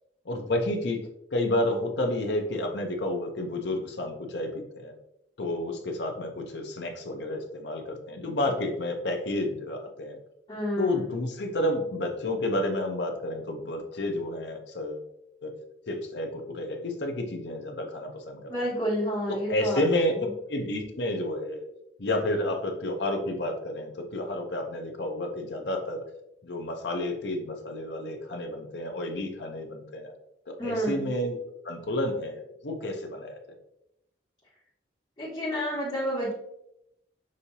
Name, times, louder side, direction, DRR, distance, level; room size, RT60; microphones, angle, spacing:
voice 1, 0.2-1.0 1.3-5.0 5.4-10.2 10.8-15.0 15.4-15.5 15.9-18.4 19.3-20.2 20.5-21.7 22.0-26.0 26.4-30.1 30.5-31.4 31.6-33.6, left 1 dB, 70° left, 3 dB, 0.8 m, -30 dB
voice 2, 10.5-11.0 18.5-20.3 30.6-31.1 35.2-36.3, equal, 30° left, -10 dB, 1.5 m, -30 dB
6.3 x 2.7 x 2.7 m, 0.81 s
head